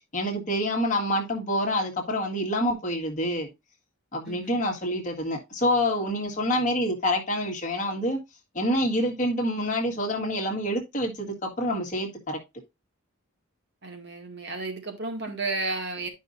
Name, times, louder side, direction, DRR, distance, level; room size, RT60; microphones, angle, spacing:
voice 1, 0.1-3.5 4.1-8.2 8.5-12.4, equal, 35° left, 1.6 m, -27 dB
voice 2, 4.3-4.6 13.8-16.1, right 3 dB, 50° right, 2.1 m, -33 dB
11.0 x 5.3 x 2.6 m
head